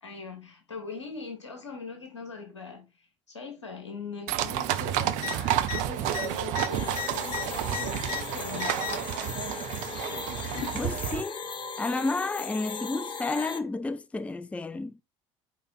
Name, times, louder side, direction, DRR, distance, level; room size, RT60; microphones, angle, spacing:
voice 1, 0.0-8.8, left 4 dB, 85° left, 1.8 m, -41 dB
sound 1, 4.3-11.2, right 11 dB, 60° right, 0.7 m, -30 dB
sound 2, 5.2-5.3 5.6-5.8 6.1-8.2 8.5-9.1 10.1-10.8 11.8-11.9, left 10 dB, 55° left, 1.2 m, -35 dB
sound 3, 6.7-13.6, left 5 dB, 35° left, 1.1 m, -38 dB
voice 2, 10.7-11.4 11.8-15.0, left 3 dB, 10° left, 0.5 m, -31 dB
5.0 x 4.6 x 6.1 m
figure-of-eight pair, 65°, 15 cm